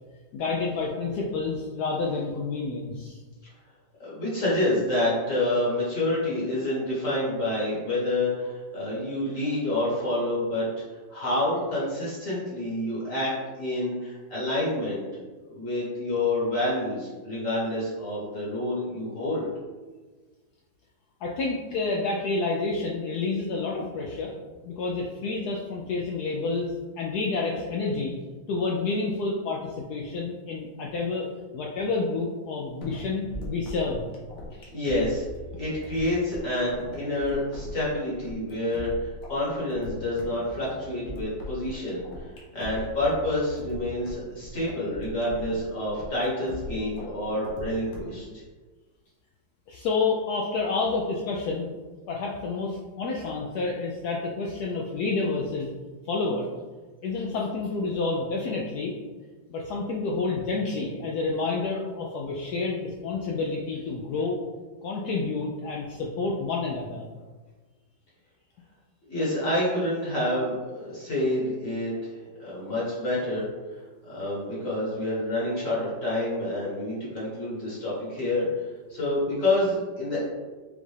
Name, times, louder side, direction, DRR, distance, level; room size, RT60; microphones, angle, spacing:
voice 1, 0.3-3.2 21.2-24.3 24.6-28.1 28.5-31.3 31.5-34.1 46.8-46.9 49.7-51.7 52.1-55.7 56.1-56.5 57.0-58.9 59.5-64.4 64.8-67.1, left 3 dB, 75° left, -2 dB, 0.9 m, -29 dB
voice 2, 4.0-10.6 10.9-15.1 15.5-19.5 34.7-35.3 35.6-48.4 69.1-71.9 72.4-73.4 74.1-80.2, left 1 dB, 50° left, -7 dB, 1.4 m, -28 dB
sound 1, 32.8-48.2, left 1 dB, 90° left, 1.7 m, -40 dB
5.3 x 2.4 x 3.2 m, 1.3 s
omnidirectional pair, 2.0 m